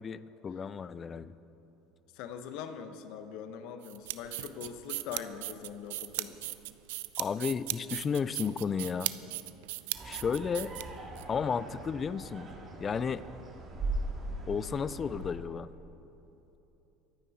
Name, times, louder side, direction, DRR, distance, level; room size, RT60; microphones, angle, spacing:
voice 1, 0.0-1.3 7.2-9.1 10.0-10.7 11.3-12.5 12.8-13.2 14.5-15.7, left 6 dB, 35° left, 17 dB, 0.5 m, -33 dB
voice 2, 2.1-6.4, left 7 dB, 70° left, 8 dB, 1.0 m, -42 dB
sound 1, 3.8-11.2, right 18 dB, 80° right, 0.4 m, -38 dB
sound 2, 9.9-15.3, right 2 dB, 40° right, 2.7 m, -40 dB
23.0 x 9.1 x 4.2 m, 3.0 s
hypercardioid pair, 85°, 0 cm